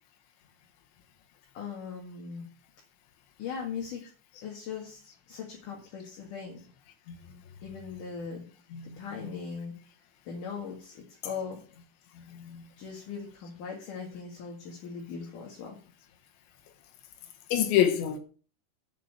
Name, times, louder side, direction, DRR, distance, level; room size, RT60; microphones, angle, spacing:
voice 1, 1.5-2.4 3.4-4.0 4.4-5.0 5.3-6.6 7.6-8.5 8.8-9.7 10.3-11.6 12.8-15.8, left 6 dB, 55° left, 2.8 m, -39 dB
voice 2, 8.7-9.4 12.2-12.7 17.5-18.2, left 10 dB, 75° left, 3.4 m, -28 dB
8.3 x 6.7 x 8.0 m
omnidirectional pair, 5.6 m